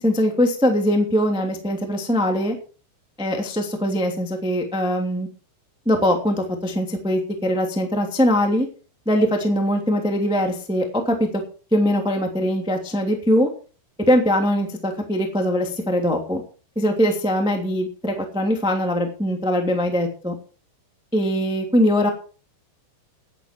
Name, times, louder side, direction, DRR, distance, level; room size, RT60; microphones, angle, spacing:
voice 1, 0.0-2.5 3.2-5.3 5.8-8.7 9.0-11.3 11.7-13.5 14.1-16.4 16.7-20.3 21.1-22.1, equal, 5° right, 3 dB, 0.4 m, -21 dB
16.5 x 10.5 x 4.6 m, 0.38 s
omnidirectional pair, 5.9 m